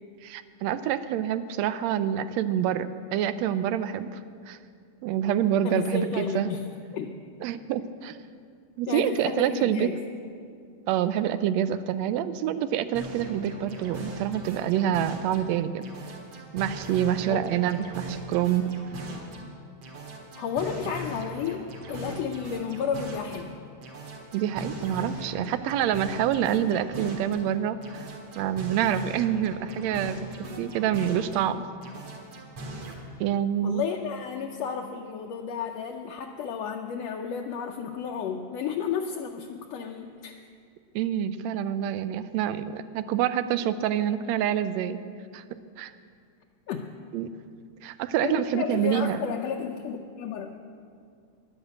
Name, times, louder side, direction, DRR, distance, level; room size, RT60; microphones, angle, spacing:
voice 1, 0.2-4.2 4.5-4.6 5.0-6.5 7.4-8.2 8.8-9.9 10.9-15.8 16.5-18.7 24.3-28.1 28.3-30.2 30.6-31.6 33.2-33.8 40.9-45.0 45.3-45.9 47.1-47.3 47.8-49.3, right 10 dB, 80° right, 13 dB, 1.7 m, -27 dB
voice 2, 5.6-6.6 6.9-7.2 8.9-10.0 17.3-17.5 20.3-23.5 33.6-40.4 46.7-46.9 48.2-50.5, left 7 dB, 75° left, 2 dB, 1.7 m, -32 dB
sound 1, 12.9-15.5 15.8-19.5 19.8-23.5 23.8-27.5 27.8-31.5 31.8-32.9, right 1 dB, 60° right, 2.7 m, -40 dB
11.0 x 11.0 x 8.0 m, 2.3 s
omnidirectional pair, 3.3 m